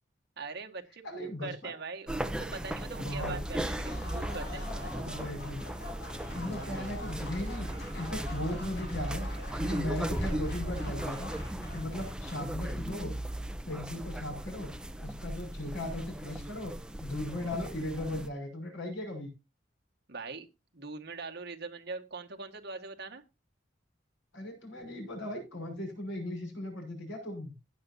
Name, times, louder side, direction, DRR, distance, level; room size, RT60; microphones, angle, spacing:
voice 1, 0.4-5.2 20.1-20.5 20.7-23.2, right 4 dB, 60° right, 4 dB, 1.7 m, -42 dB
voice 2, 1.0-1.7 3.0-3.4 5.0-5.6 6.3-11.3 11.7-13.1 13.7-16.7 17.0-19.3 24.3-27.5, left 1 dB, 85° left, 2 dB, 5.7 m, -37 dB
sound 1, 2.1-18.3, right 1 dB, 5° right, 0.8 m, -37 dB
Applause, 3.6-13.0, left 2 dB, 60° left, 7.3 m, -47 dB
15.5 x 9.3 x 2.7 m, 0.26 s
head